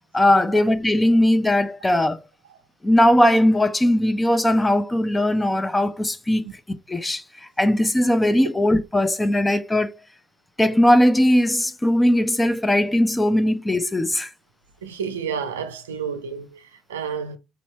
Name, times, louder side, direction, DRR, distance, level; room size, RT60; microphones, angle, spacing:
voice 1, 0.1-2.2 2.8-6.5 6.9-9.9 10.6-14.3, left 1 dB, 15° left, 0.7 m, -19 dB
voice 2, 14.8-17.4, right 6 dB, 80° right, 0.5 m, -30 dB
4.1 x 2.7 x 4.4 m
figure-of-eight pair, 50°, 0 cm